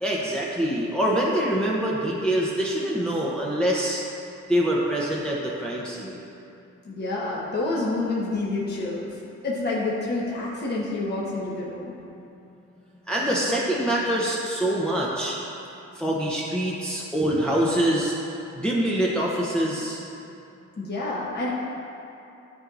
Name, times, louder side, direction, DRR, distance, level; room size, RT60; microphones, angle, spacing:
voice 1, 0.0-4.0 4.5-6.2 13.1-15.4 15.9-18.1 18.5-20.0, right 1 dB, 5° left, -5 dB, 0.8 m, -25 dB
voice 2, 6.8-9.2 9.4-11.9 20.8-21.5, left 2 dB, 35° left, -6 dB, 1.2 m, -28 dB
12.0 x 4.6 x 2.6 m, 2.7 s
cardioid pair, 90°, 30 cm